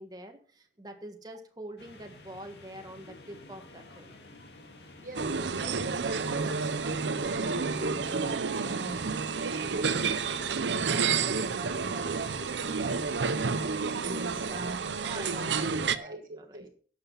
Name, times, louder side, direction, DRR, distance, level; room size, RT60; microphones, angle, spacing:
voice 1, 0.0-4.1 9.6-9.7 14.3-16.7, right 1 dB, 20° right, 1.6 m, -45 dB
sound 1, 1.8-14.8, left 2 dB, 75° left, 2.0 m, -51 dB
voice 2, 5.0-13.5 14.0-15.3 15.9-16.7, right 1 dB, 50° right, 1.1 m, -42 dB
sound 2, 5.1-16.0, right 5 dB, 90° right, 0.7 m, -30 dB
11.0 x 7.7 x 5.5 m
head